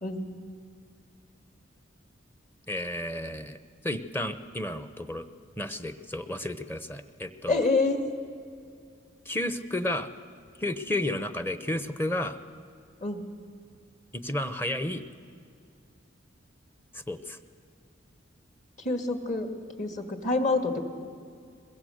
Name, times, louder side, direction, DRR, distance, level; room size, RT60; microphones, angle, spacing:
voice 1, 2.7-3.6 3.8-5.3 5.6-7.6 9.3-10.1 10.6-12.4 14.1-15.0 16.9-17.4, left 1 dB, 10° left, 11 dB, 0.8 m, -32 dB
voice 2, 7.5-8.1 13.0-13.2 18.8-19.5 19.8-20.8, left 3 dB, 40° left, 6 dB, 2.1 m, -26 dB
22.5 x 22.0 x 7.9 m, 2.3 s
head